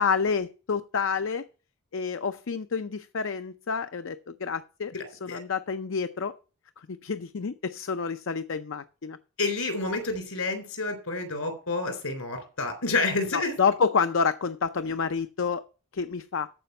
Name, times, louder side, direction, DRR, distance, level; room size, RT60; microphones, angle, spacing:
voice 1, 0.0-1.5 1.9-4.9 5.2-6.4 6.8-9.2 13.3-15.6 15.9-16.5, left 5 dB, 60° left, 0.5 m, -28 dB
voice 2, 9.4-13.5, left 3 dB, 85° left, 3.7 m, -29 dB
14.0 x 5.2 x 5.4 m
head